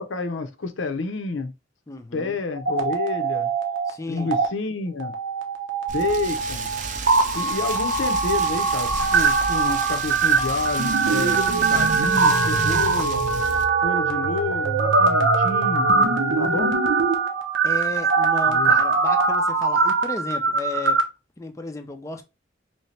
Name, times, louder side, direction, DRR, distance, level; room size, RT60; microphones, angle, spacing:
voice 1, 0.0-1.5 2.1-3.5 4.1-5.1 5.9-6.7 7.3-13.2 13.8-15.9 16.4-16.8 18.5-18.8, left 3 dB, 85° left, 0.7 m, -29 dB
voice 2, 1.9-2.4 3.9-4.3 15.9-16.5 17.6-21.0 21.4-22.2, left 3 dB, 15° left, 0.4 m, -34 dB
sound 1, 2.5-3.9 4.2-4.5 5.0-21.0, right 4 dB, 80° right, 0.8 m, -22 dB
Rain, 5.9-13.6, right 4 dB, 40° right, 0.5 m, -33 dB
3.2 x 2.8 x 3.1 m
head